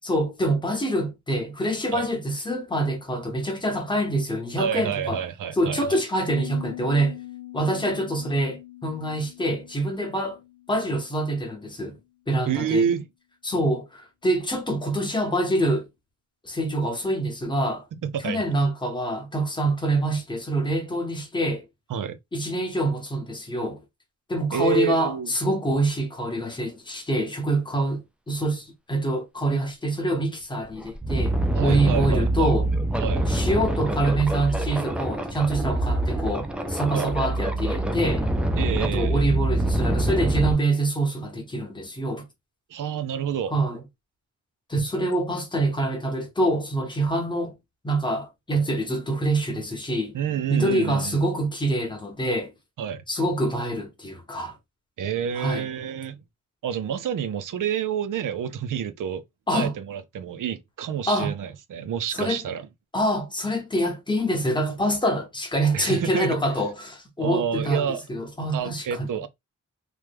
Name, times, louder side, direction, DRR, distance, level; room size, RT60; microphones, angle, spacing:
voice 1, 0.1-5.2 5.6-7.2 7.5-10.4 10.7-12.0 12.3-12.9 13.4-15.9 16.4-17.8 18.2-21.6 22.3-23.8 24.3-28.0 28.3-32.7 33.3-38.3 38.8-42.3 43.5-43.8 44.7-47.5 47.8-50.1 50.5-52.5 53.1-54.5 55.4-55.7 59.5-59.7 61.1-61.3 62.1-62.4 62.9-69.1, right 1 dB, 15° left, 0.8 m, -25 dB
voice 2, 4.6-6.0 12.5-13.1 17.9-18.5 21.9-22.2 24.5-25.3 31.5-32.5 33.0-33.3 36.9-37.1 38.6-39.3 42.7-43.5 50.1-51.2 52.8-53.0 55.0-56.2 56.6-59.2 59.5-62.7 65.7-66.4 67.2-68.0 68.5-69.3, right 8 dB, 80° right, 0.5 m, -28 dB
Piano, 6.3-11.9, left 15 dB, 70° left, 0.7 m, -43 dB
sound 1, 30.1-30.2 30.6-40.5, right 1 dB, 5° right, 0.3 m, -25 dB
3.1 x 2.2 x 3.3 m
wide cardioid pair, 180°, 31 cm